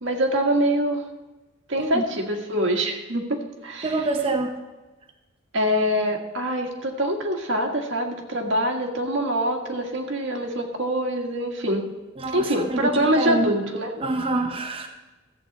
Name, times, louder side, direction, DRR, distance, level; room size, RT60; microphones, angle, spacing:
voice 1, 0.0-1.0 1.7-3.2 3.6-4.0 5.5-11.9 12.3-13.9, equal, 80° right, 2 dB, 1.6 m, -24 dB
voice 2, 3.8-4.6 12.2-13.5 14.0-14.9, right 2 dB, 30° right, 3 dB, 0.7 m, -26 dB
14.0 x 7.9 x 4.0 m, 1.1 s
head